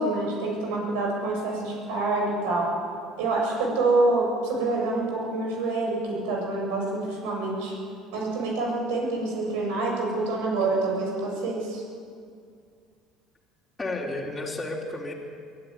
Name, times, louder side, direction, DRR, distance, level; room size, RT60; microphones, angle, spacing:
voice 1, 0.0-2.7 3.2-7.7 8.1-11.8, right 2 dB, 75° right, 0 dB, 7.4 m, -26 dB
voice 2, 13.8-15.1, left 2 dB, 15° left, -4 dB, 3.7 m, -32 dB
22.5 x 13.0 x 9.7 m, 2.3 s
hypercardioid pair, 70°, 0 cm